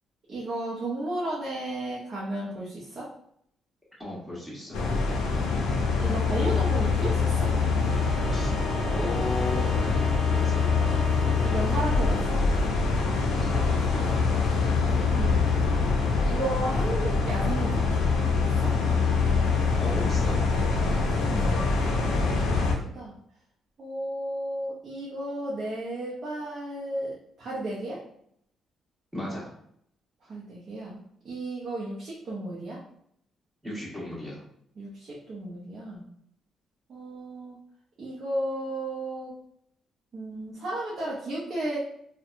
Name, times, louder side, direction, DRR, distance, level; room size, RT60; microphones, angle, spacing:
voice 1, 0.3-3.1 6.0-7.5 11.4-12.4 14.8-15.7 16.2-18.0 18.4-18.7 21.1-22.7 22.9-23.1 23.8-28.0 30.3-32.8 34.8-36.0 36.9-37.6 38.0-39.3 40.1-41.8, right 1 dB, 55° right, -5 dB, 0.6 m, -34 dB
voice 2, 4.0-4.8 8.2-8.5 8.9-10.0 10.3-10.6 13.4-14.1 19.8-20.4 29.1-29.5 33.6-34.4, left 1 dB, 5° right, -7 dB, 1.3 m, -35 dB
sound 1, 4.7-22.8, left 4 dB, 85° left, 0.5 m, -24 dB
Bowed string instrument, 7.6-12.5, left 2 dB, 40° left, 0.6 m, -39 dB
2.7 x 2.2 x 2.5 m, 0.70 s
cardioid pair, 90°, 0 cm